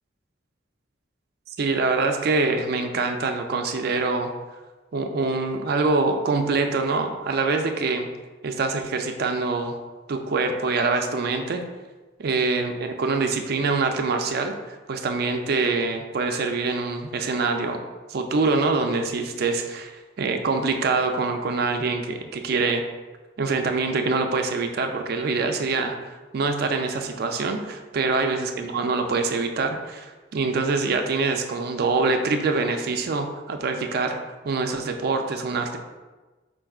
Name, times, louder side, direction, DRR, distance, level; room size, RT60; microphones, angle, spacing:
voice 1, 1.6-4.3 4.9-8.1 8.4-9.8 10.1-11.6 12.2-17.8 18.1-19.9 20.2-22.8 23.4-34.2 34.4-35.8, right 3 dB, 55° right, 5 dB, 0.4 m, -25 dB
4.5 x 4.4 x 2.3 m, 1.2 s
head